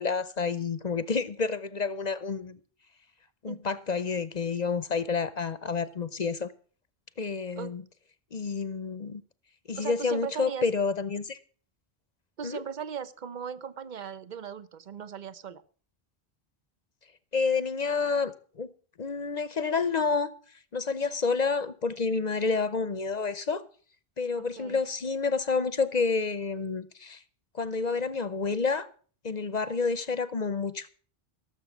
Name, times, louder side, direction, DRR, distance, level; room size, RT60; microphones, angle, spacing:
voice 1, 0.0-2.6 3.4-6.5 7.2-7.8 8.3-9.2 9.7-11.4 12.4-12.6 17.3-18.7 19.0-20.3 20.7-23.6 24.2-27.2 27.5-28.9 29.2-30.9, left 4 dB, 45° left, 0.8 m, -29 dB
voice 2, 9.8-10.6 12.4-15.6 24.4-24.8, right 7 dB, 50° right, 1.0 m, -38 dB
17.0 x 7.3 x 7.2 m
omnidirectional pair, 1.0 m